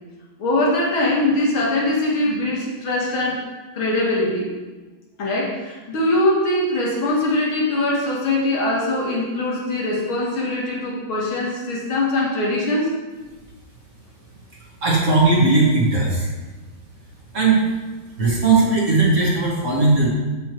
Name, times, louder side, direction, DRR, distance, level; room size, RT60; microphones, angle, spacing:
voice 1, 0.4-3.5 3.7-4.5 5.2-13.0, left 1 dB, 85° left, -4 dB, 2.6 m, -22 dB
voice 2, 14.6-16.3 17.3-17.6 18.2-20.1, right 3 dB, 40° right, -4 dB, 1.7 m, -18 dB
6.9 x 6.1 x 4.4 m, 1.3 s
omnidirectional pair, 2.2 m